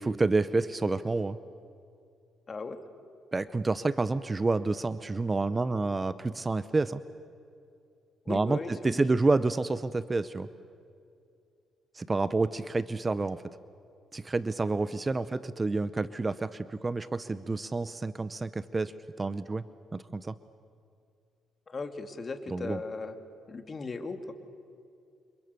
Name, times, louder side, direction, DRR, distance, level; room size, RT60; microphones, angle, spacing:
voice 1, 0.0-1.4 3.3-7.0 8.3-10.5 11.9-13.4 14.1-19.6 19.9-20.3 22.5-22.8, right 3 dB, 25° right, 14 dB, 0.8 m, -29 dB
voice 2, 2.5-2.8 8.3-9.2 15.1-15.2 21.7-23.2 23.5-24.3, left 3 dB, 35° left, 7 dB, 2.3 m, -37 dB
29.0 x 26.0 x 6.8 m, 2.5 s
cardioid pair, 90°, 0 cm